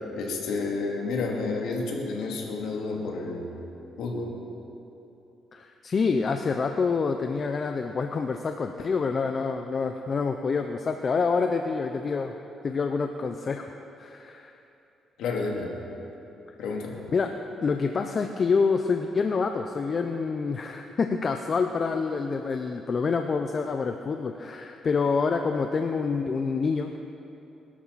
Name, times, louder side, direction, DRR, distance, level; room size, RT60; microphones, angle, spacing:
voice 1, 0.1-3.5 4.0-4.3 15.2-15.7 16.6-17.0, left 3 dB, 80° left, -1 dB, 2.6 m, -30 dB
voice 2, 5.5-12.3 12.6-13.7 14.0-14.5 17.1-27.0, left 4 dB, 45° left, 5 dB, 0.7 m, -27 dB
22.5 x 12.5 x 4.2 m, 2.9 s
cardioid pair, 90°, 0 cm